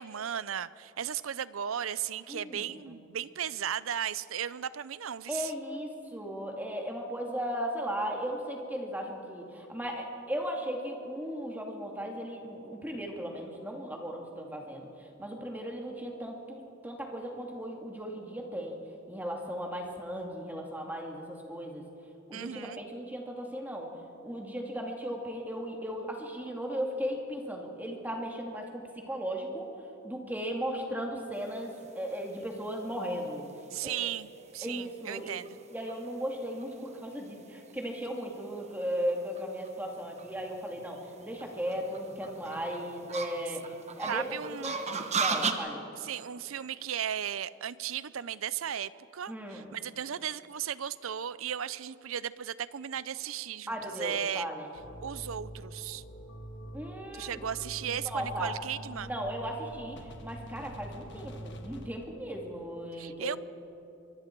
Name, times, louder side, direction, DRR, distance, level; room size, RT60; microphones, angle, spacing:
voice 1, 0.0-5.5 22.3-22.8 33.7-35.6 44.1-44.8 45.9-54.5 55.0-56.0 57.1-59.1 63.0-63.4, right 9 dB, 80° right, 17 dB, 0.6 m, -36 dB
voice 2, 2.3-2.6 5.3-18.8 19.1-21.8 22.3-23.9 24.2-29.7 30.0-33.5 33.8-34.1 34.6-35.3 35.7-44.9 45.2-45.8 49.3-49.7 53.7-54.7 56.7-57.4 57.9-58.5 59.0-63.4, equal, 10° right, 0 dB, 2.4 m, -36 dB
sound 1, 31.6-45.5, right 4 dB, 35° right, 1.2 m, -38 dB
sound 2, 54.7-61.9, right 1 dB, 60° left, 1.7 m, -45 dB
24.5 x 24.0 x 4.6 m, 2.8 s
head